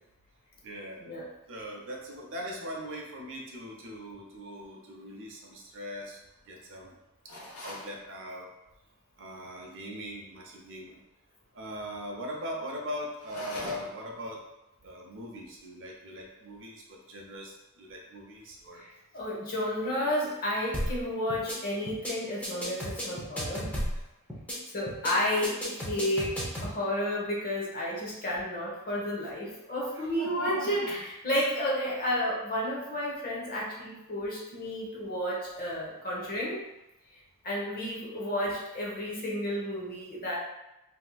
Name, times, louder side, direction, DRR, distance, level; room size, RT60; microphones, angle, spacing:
voice 1, 0.6-1.0 1.5-6.2 6.5-6.9 7.6-8.5 9.2-11.0 11.5-14.4 14.8-18.8 29.9-31.0, equal, 60° right, -1 dB, 0.7 m, -40 dB
sound 1, 7.3-7.9 13.2-14.1, left 1 dB, 75° left, 0.8 m, -41 dB
voice 2, 18.7-23.7 24.7-36.6 37.4-40.4, left 1 dB, 40° left, -4 dB, 0.9 m, -32 dB
sound 2, 20.7-21.0 21.3-21.6 21.9-22.1 22.4-24.0 24.3-24.6 24.9-25.1 25.4-26.7, equal, 5° left, 0.7 m, -33 dB
3.4 x 2.8 x 2.3 m, 0.95 s
head